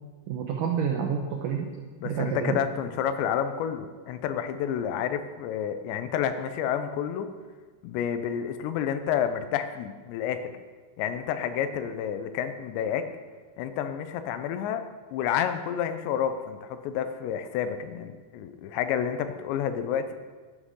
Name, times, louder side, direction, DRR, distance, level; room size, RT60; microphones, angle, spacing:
voice 1, 0.3-1.7 2.0-2.6, right 7 dB, 80° right, 1 dB, 1.9 m, -28 dB
voice 2, 2.0-7.3 7.8-10.5 11.0-13.1 13.6-14.8 15.1-20.1, left 8 dB, 85° left, 9 dB, 3.1 m, -29 dB
12.5 x 11.5 x 3.8 m, 1.4 s
omnidirectional pair, 5.0 m